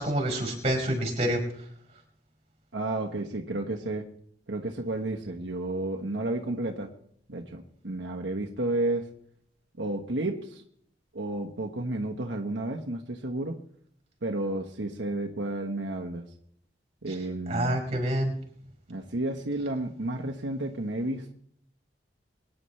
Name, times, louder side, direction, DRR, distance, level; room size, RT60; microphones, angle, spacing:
voice 1, 0.0-1.4 17.5-18.3, right 1 dB, 35° right, 2 dB, 4.7 m, -27 dB
voice 2, 2.7-4.1 4.5-6.9 7.3-9.1 9.8-10.6 11.1-13.6 14.2-16.2 17.0-17.9 18.9-21.3, right 2 dB, 85° right, 1 dB, 1.3 m, -31 dB
24.0 x 10.5 x 3.3 m, 0.66 s
head